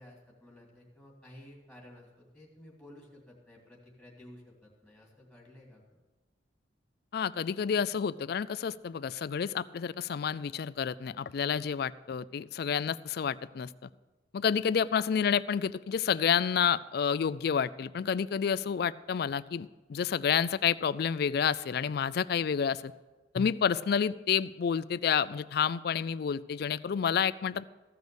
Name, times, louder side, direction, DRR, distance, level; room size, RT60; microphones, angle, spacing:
voice 1, 0.0-5.8, left 1 dB, ahead, -3 dB, 2.4 m, -53 dB
voice 2, 7.1-13.7 14.3-22.9 23.3-27.6, left 7 dB, 55° left, 17 dB, 0.3 m, -29 dB
15.0 x 6.3 x 6.8 m, 1.2 s
head